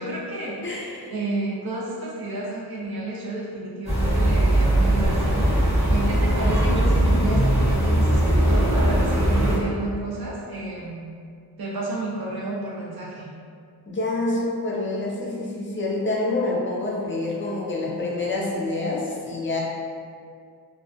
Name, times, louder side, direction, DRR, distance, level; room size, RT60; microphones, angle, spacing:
voice 1, 0.0-5.5 5.9-11.0 11.6-13.3, right 2 dB, 65° right, -5 dB, 0.6 m, -30 dB
voice 2, 0.6-1.1 13.9-19.6, left 2 dB, 30° left, -4 dB, 0.5 m, -27 dB
sound 1, 3.8-9.6, right 1 dB, 15° right, 0.9 m, -20 dB
2.2 x 2.1 x 2.6 m, 2.3 s
wide cardioid pair, 85°, 40 cm